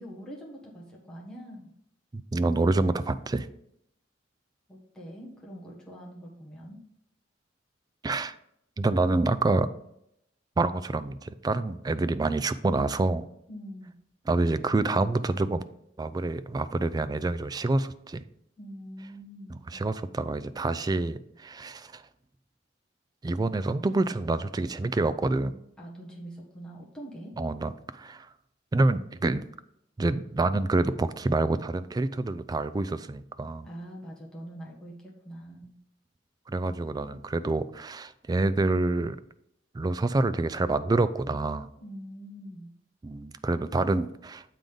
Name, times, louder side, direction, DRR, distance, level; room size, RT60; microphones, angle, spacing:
voice 1, 0.0-1.7 4.7-6.8 13.5-13.9 18.6-19.8 25.8-27.3 33.6-35.7 41.8-42.7, equal, 5° left, -5 dB, 1.5 m, -44 dB
voice 2, 2.1-3.5 8.0-8.4 8.8-9.7 10.6-13.3 14.3-15.7 16.0-18.2 19.5-22.0 23.2-25.6 27.4-28.3 28.7-29.4 30.0-33.7 36.5-39.2 39.7-41.7 43.0-44.4, right 2 dB, 20° right, 14 dB, 0.3 m, -27 dB
7.5 x 3.8 x 5.1 m, 0.77 s
head